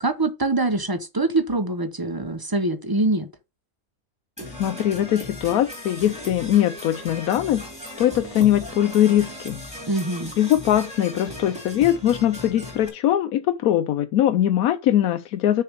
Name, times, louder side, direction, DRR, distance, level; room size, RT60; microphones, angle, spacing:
voice 1, 0.0-3.3 9.8-10.3, right 2 dB, 20° right, 0.7 m, -24 dB
Percussion / Brass instrument, 4.4-12.9, left 1 dB, 5° right, 3.1 m, -37 dB
voice 2, 4.6-7.6 8.0-9.6 10.4-15.6, left 11 dB, 85° left, 1.1 m, -21 dB
6.6 x 5.1 x 6.7 m
omnidirectional pair, 1.5 m